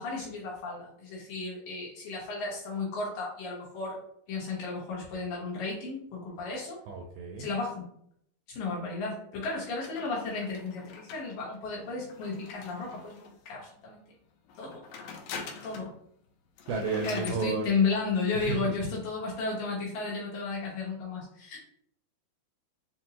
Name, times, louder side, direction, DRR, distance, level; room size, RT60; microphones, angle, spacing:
voice 1, 0.0-4.0 4.3-6.8 7.4-7.9 8.5-14.0 14.6-14.8 15.6-15.9 17.0-21.7, left 4 dB, 70° left, -5 dB, 2.4 m, -33 dB
voice 2, 6.9-7.5 16.7-17.6 18.3-18.7, right 4 dB, 85° right, 1 dB, 2.1 m, -32 dB
sound 1, 9.8-13.5 14.5-16.0 16.3-16.4 16.6-17.4, left 5 dB, 90° left, 1.9 m, -44 dB
6.5 x 2.2 x 2.8 m, 0.69 s
omnidirectional pair, 4.7 m